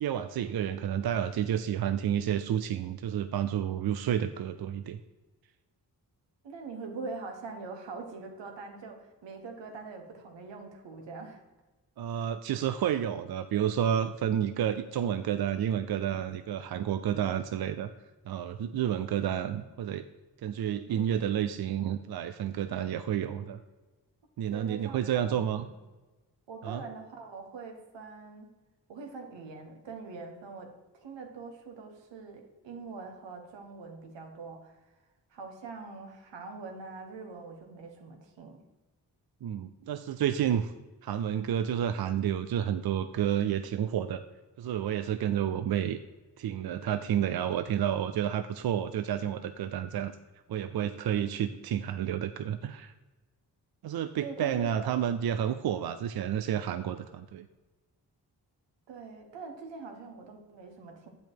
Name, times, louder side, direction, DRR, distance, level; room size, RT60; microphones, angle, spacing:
voice 1, 0.0-5.0 12.0-17.9 18.3-20.0 20.4-23.6 24.4-25.7 26.6-26.9 39.4-40.7 41.0-44.2 44.6-46.0 46.4-50.1 50.5-52.9 53.8-57.5, right 9 dB, 60° right, 10 dB, 0.5 m, -30 dB
voice 2, 6.4-11.4 20.9-21.2 24.5-25.6 26.5-28.5 28.9-34.8 35.3-38.6 54.2-54.9 55.7-55.9 58.9-61.1, right 4 dB, 85° right, 4 dB, 1.3 m, -43 dB
7.7 x 5.2 x 4.6 m, 1.2 s
supercardioid pair, 45°, 43 cm